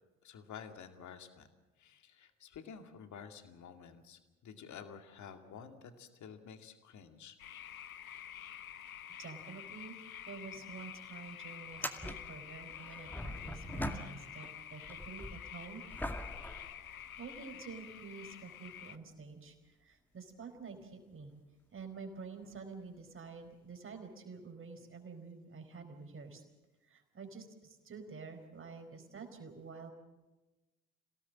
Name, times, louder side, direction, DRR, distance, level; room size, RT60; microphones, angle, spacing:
voice 1, 0.2-1.5 1.8-7.4, left 7 dB, 45° left, 7 dB, 2.4 m, -51 dB
sound 1, 7.4-19.0, left 9 dB, 85° left, 0.8 m, -49 dB
voice 2, 9.2-10.0 10.3-15.8 17.2-21.3 21.7-26.4 26.9-29.9, right 5 dB, 30° right, 5 dB, 4.5 m, -49 dB
sound 2, 10.3-10.4 10.7-10.8 11.6-14.5 14.8-17.5 18.2-18.3 22.4-22.6 23.9-24.0, equal, 5° left, 2.1 m, -43 dB
28.0 x 18.0 x 7.5 m, 1.1 s
figure-of-eight pair, 55°, 41 cm